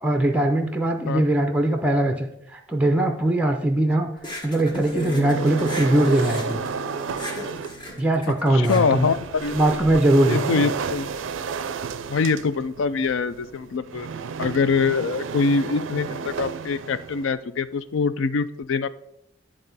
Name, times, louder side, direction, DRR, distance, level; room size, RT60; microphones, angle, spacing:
voice 1, 0.0-4.1 4.4-6.6 8.0-9.1 9.5-10.7, right 1 dB, 5° right, 4 dB, 0.5 m, -21 dB
sound 1, 4.2-9.9, left 1 dB, 25° left, 1.3 m, -37 dB
sound 2, 4.9-8.3, right 1 dB, 40° left, 1.0 m, -36 dB
sound 3, 5.2-7.8 8.5-17.4, right 5 dB, 70° right, 0.4 m, -32 dB
voice 2, 8.5-9.6 10.3-11.1 12.1-14.1 14.4-18.9, left 4 dB, 70° left, 14 dB, 0.4 m, -24 dB
10.0 x 3.7 x 4.1 m, 0.79 s
head